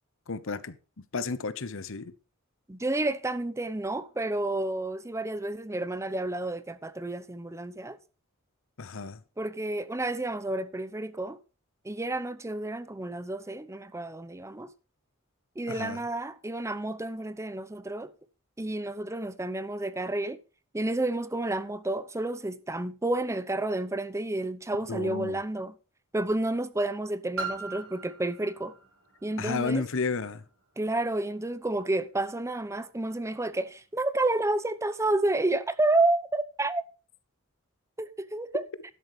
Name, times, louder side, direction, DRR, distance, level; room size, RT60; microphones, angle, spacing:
voice 1, 0.3-0.8 1.1-2.1 8.8-9.2 15.7-16.0 24.9-25.4 29.4-30.4, left 4 dB, 65° left, 1.0 m, -32 dB
voice 2, 2.7-8.0 9.4-11.4 11.8-14.7 15.6-18.1 18.6-20.4 20.7-25.7 26.1-28.7 29.2-29.8 30.8-36.8 38.0-38.6, right 2 dB, 15° right, 0.7 m, -30 dB
Piano, 27.4-32.8 33.5-33.6, right 3 dB, 70° right, 4.8 m, -42 dB
12.0 x 11.0 x 3.2 m
head